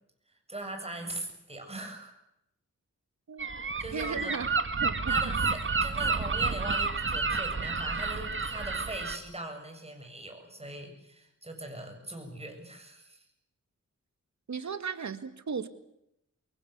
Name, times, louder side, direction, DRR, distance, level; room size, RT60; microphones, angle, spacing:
voice 1, 0.5-2.1 3.5-4.3 5.1-13.2, right 1 dB, 20° right, 4 dB, 7.4 m, -41 dB
voice 2, 3.3-3.6 3.9-5.3 14.5-15.7, right 6 dB, 70° right, 11 dB, 2.1 m, -36 dB
Gull seagull, 3.4-9.2, right 4 dB, 45° right, 2.2 m, -30 dB
25.0 x 22.5 x 8.3 m, 0.82 s
wide cardioid pair, 95°, 29 cm